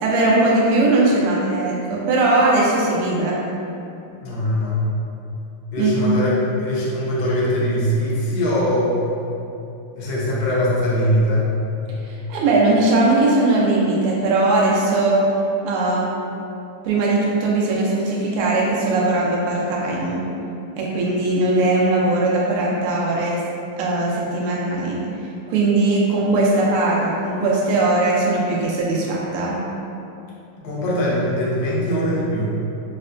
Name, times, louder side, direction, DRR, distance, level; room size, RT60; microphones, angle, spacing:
voice 1, 0.0-3.4 5.8-6.1 12.1-15.3 15.6-16.1 16.8-20.2 20.8-23.4 23.8-25.0 25.5-29.6, right 2 dB, 90° right, -4 dB, 1.6 m, -19 dB
voice 2, 4.2-4.9 5.7-6.3 6.6-9.0 10.0-11.5 30.6-32.6, equal, 65° left, -7 dB, 0.9 m, -21 dB
4.3 x 2.1 x 2.5 m, 2.8 s
omnidirectional pair, 2.4 m